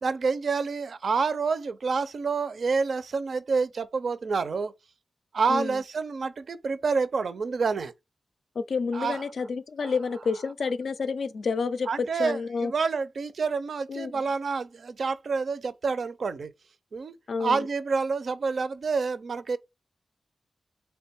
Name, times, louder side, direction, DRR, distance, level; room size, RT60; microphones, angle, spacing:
voice 1, 0.0-4.7 5.3-7.9 8.9-9.2 9.8-9.9 11.9-16.5 16.9-19.6, right 4 dB, 60° right, 0.5 m, -28 dB
voice 2, 8.6-12.7 13.9-14.2 17.3-17.7, left 5 dB, 70° left, 0.4 m, -29 dB
3.5 x 2.2 x 4.2 m
wide cardioid pair, 150°, 0 cm